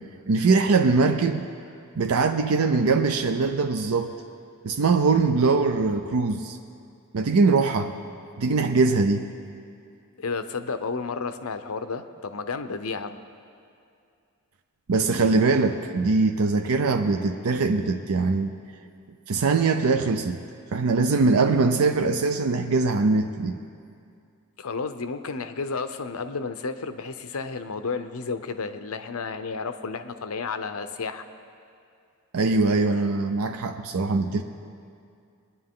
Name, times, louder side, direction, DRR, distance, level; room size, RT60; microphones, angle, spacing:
voice 1, 0.3-1.5 2.0-4.1 4.6-6.6 7.1-7.9 8.4-9.3 14.9-18.5 19.3-20.4 20.7-23.6 32.3-34.4, right 4 dB, 70° right, 6 dB, 0.5 m, -22 dB
voice 2, 10.2-13.2 24.6-31.2, left 4 dB, 70° left, 10 dB, 0.7 m, -32 dB
22.0 x 9.9 x 3.8 m, 2.4 s
head